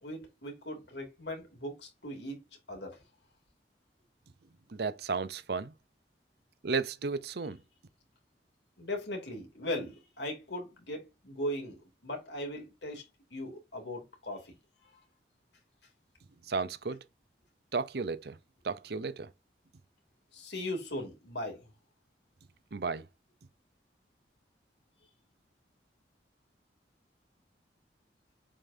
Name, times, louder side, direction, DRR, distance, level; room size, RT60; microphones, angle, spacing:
voice 1, 0.0-2.4 2.7-3.0 8.8-13.0 13.3-14.6 20.3-21.7, left 1 dB, 75° left, 2.9 m, -38 dB
voice 2, 4.8-5.7 6.6-7.6 16.5-17.0 17.7-18.3 18.6-19.3 22.7-23.0, right 4 dB, 60° right, 0.7 m, -33 dB
7.2 x 5.2 x 2.7 m
head